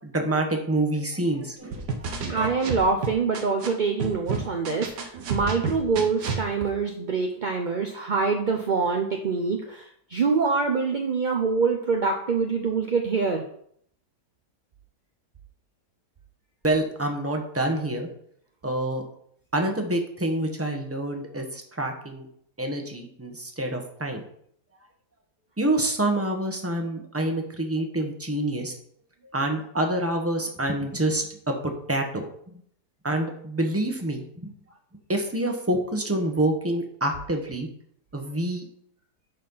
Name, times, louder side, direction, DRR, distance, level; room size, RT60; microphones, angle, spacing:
voice 1, 0.0-2.1 16.6-18.1 18.6-19.0 19.5-22.3 22.6-24.2 25.6-28.8 29.3-32.5 33.0-34.5 35.1-37.7 38.1-38.7, right 1 dB, 10° right, 3 dB, 1.1 m, -27 dB
sound 1, 1.7-3.7 4.0-6.4, right 4 dB, 90° right, 1.8 m, -30 dB
voice 2, 2.3-13.4, right 4 dB, 45° right, 2 dB, 0.6 m, -25 dB
10.0 x 4.3 x 5.6 m, 0.66 s
omnidirectional pair, 1.8 m